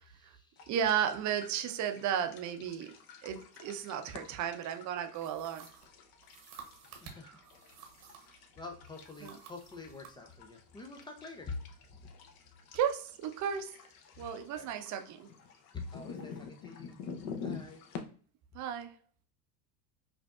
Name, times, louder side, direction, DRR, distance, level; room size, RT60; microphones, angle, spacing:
voice 1, 0.0-0.7 7.0-7.3 8.2-11.6 14.6-14.7 15.7-17.0 17.4-17.8, left 3 dB, 10° left, 2 dB, 0.3 m, -46 dB
sound 1, 0.6-18.0, left 6 dB, 45° left, 0.7 m, -49 dB
voice 2, 0.7-2.9 3.2-5.7 7.2-7.3 9.2-9.4 12.7-13.8 14.2-15.3 18.5-18.9, right 8 dB, 35° right, 7 dB, 0.6 m, -34 dB
sound 2, 5.1-8.4 8.9-10.2, right 7 dB, 75° right, 1.1 m, -53 dB
5.1 x 2.6 x 2.3 m, 0.42 s
hypercardioid pair, 95°, 49 cm